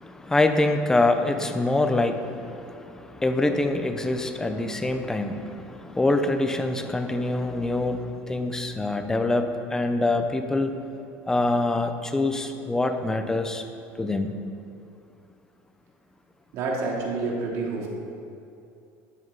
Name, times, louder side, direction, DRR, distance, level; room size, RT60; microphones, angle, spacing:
voice 1, 0.0-10.7 11.3-13.6 14.0-14.3, left 2 dB, 10° left, 7 dB, 0.8 m, -25 dB
voice 2, 16.5-17.9, right 3 dB, 55° right, -2 dB, 2.7 m, -28 dB
12.5 x 10.0 x 4.1 m, 2.6 s
cardioid pair, 140°, 6 cm